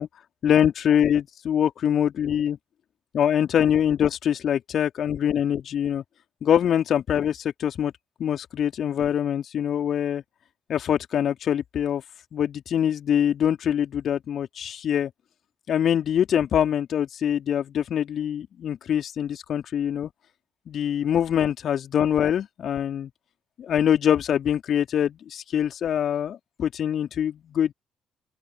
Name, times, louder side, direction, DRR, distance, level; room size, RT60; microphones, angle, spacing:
voice 1, 0.4-2.6 3.1-6.0 6.4-7.9 8.2-10.2 10.7-12.0 12.3-15.1 15.7-20.1 20.7-23.1 23.6-27.7, left 9 dB, 50° left, 3.6 m, -24 dB
open air
figure-of-eight pair, 45°, 0 cm